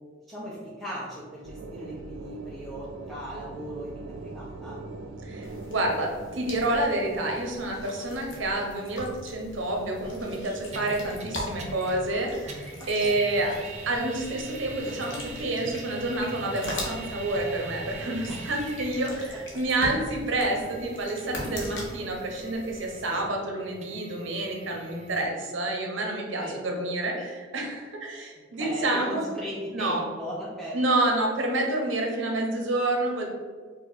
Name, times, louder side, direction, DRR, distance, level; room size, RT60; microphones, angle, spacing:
voice 1, 0.3-4.8 13.0-13.3 13.6-13.7 18.3-18.4 19.8-19.9 23.1-23.2 26.4-26.6 28.6-30.8, equal, ahead, -8 dB, 0.7 m, -38 dB
sound 1, 1.4-6.8, right 3 dB, 90° right, 0.4 m, -41 dB
voice 2, 5.2-13.6 13.9-29.3 29.7-30.1 30.7-33.3, right 2 dB, 70° right, 1 dB, 0.9 m, -28 dB
sound 2, 5.4-23.2, left 1 dB, 65° left, 1.1 m, -41 dB
sound 3, 10.7-12.2 12.5-19.3 20.2-25.2, right 3 dB, 35° right, 0.5 m, -42 dB
4.7 x 2.6 x 4.1 m, 1.5 s
head